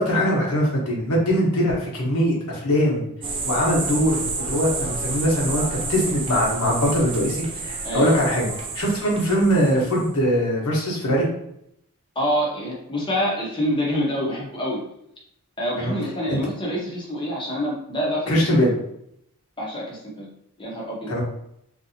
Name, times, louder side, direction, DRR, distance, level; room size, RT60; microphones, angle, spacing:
voice 1, 0.0-3.0 3.4-8.5 8.7-11.3 15.8-15.9 16.3-16.4 18.3-18.7 21.1-21.2, equal, 85° left, -3 dB, 1.1 m, -21 dB
sound 1, 3.2-10.1, right 4 dB, 25° right, 0.3 m, -30 dB
voice 2, 7.8-8.2 12.2-14.8 15.6-18.4 19.6-20.3 20.6-21.1, equal, 20° left, -3 dB, 0.7 m, -26 dB
3.2 x 2.7 x 2.7 m, 0.76 s
head